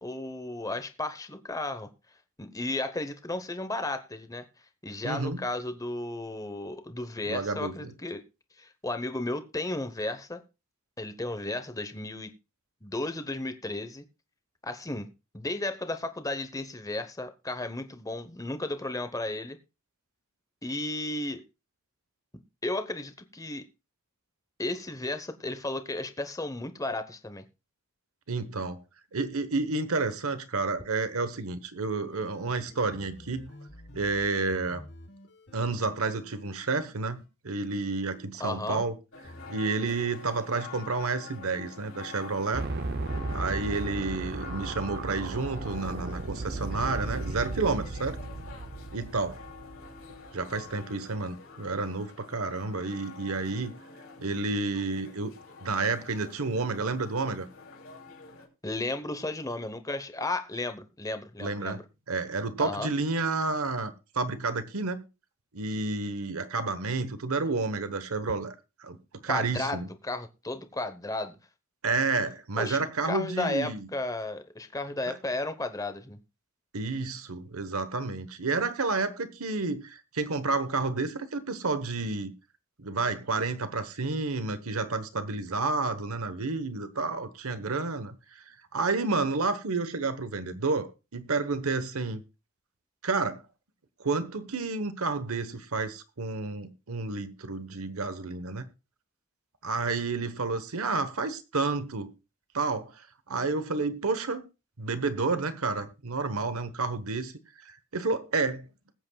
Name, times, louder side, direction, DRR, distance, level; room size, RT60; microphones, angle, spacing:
voice 1, 0.0-1.9 2.4-4.4 4.8-8.2 8.6-10.4 11.0-12.3 12.8-14.0 14.6-15.1 15.3-19.6 20.6-21.4 22.6-23.7 24.6-27.4 38.4-38.8 58.6-61.8 62.6-62.9 69.3-71.4 72.6-72.8 73.0-76.2, left 2 dB, 15° left, 0.9 m, -34 dB
voice 2, 5.0-5.4 7.3-7.9 28.3-28.8 29.1-33.5 33.9-34.8 35.5-38.9 39.5-42.7 43.3-48.2 48.9-49.4 50.3-53.7 54.2-55.3 55.6-57.5 61.4-61.8 62.1-65.0 65.5-68.5 68.8-69.0 69.2-69.9 71.8-73.9 75.1-75.2 76.7-82.3 82.8-88.2 88.7-92.2 93.0-93.4 94.0-98.6 99.6-102.1 102.5-104.5 104.8-107.3 107.6-108.7, right 3 dB, 80° right, 1.1 m, -30 dB
sound 1, 32.0-38.6 39.2-39.6, left 1 dB, 55° left, 2.1 m, -51 dB
sound 2, 39.1-58.5, left 5 dB, 70° left, 3.0 m, -47 dB
sound 3, 42.5-50.6, right 3 dB, 50° right, 0.6 m, -35 dB
20.5 x 8.4 x 2.3 m
head